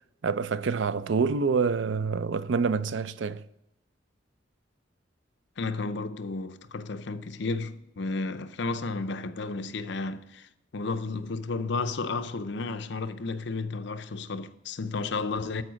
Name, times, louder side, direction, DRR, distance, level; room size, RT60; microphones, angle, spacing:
voice 1, 0.2-3.4, right 5 dB, 70° right, 0.4 m, -27 dB
voice 2, 5.6-15.6, left 3 dB, 65° left, 0.6 m, -32 dB
12.5 x 4.7 x 6.2 m
head